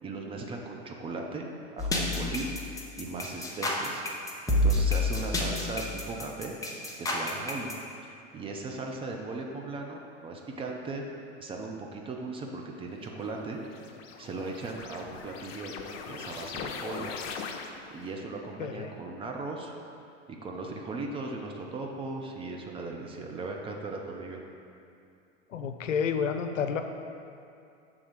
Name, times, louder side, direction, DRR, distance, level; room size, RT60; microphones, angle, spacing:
voice 1, 0.0-1.5 1.7-2.5 3.0-4.0 4.5-6.5 7.0-7.7 8.0-11.0 11.4-13.6 14.2-15.7 16.1-17.1 17.9-19.7 20.3-24.4, right 3 dB, 15° right, 1 dB, 0.4 m, -38 dB
sound 1, 1.8-7.7, left 1 dB, 10° left, 0.7 m, -29 dB
sound 2, 13.1-18.0, left 6 dB, 55° left, 0.6 m, -40 dB
voice 2, 18.6-18.9 25.5-26.8, left 6 dB, 90° left, 7 dB, 0.6 m, -30 dB
6.5 x 3.6 x 5.0 m, 2.6 s
hypercardioid pair, 100°, 37 cm